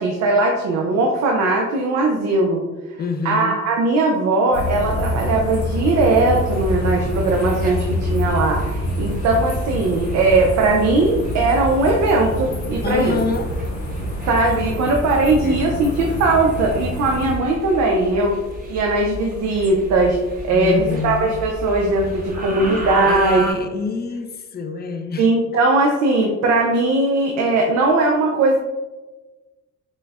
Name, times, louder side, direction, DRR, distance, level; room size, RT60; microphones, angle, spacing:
voice 1, 0.0-2.6 3.2-13.2 14.3-18.4 18.7-20.2 20.4-23.4 25.2-28.6, right 2 dB, 65° right, 1 dB, 0.5 m, -19 dB
voice 2, 3.0-3.6 12.8-13.5 15.4-15.7 20.5-21.3 23.0-25.6, left 4 dB, 35° left, 6 dB, 0.4 m, -27 dB
sound 1, 4.5-17.4, left 1 dB, 70° left, 1.1 m, -26 dB
sound 2, 5.8-23.5, right 1 dB, 30° right, 0.9 m, -33 dB
6.1 x 2.1 x 2.3 m, 1.2 s
cardioid pair, 90°, 30 cm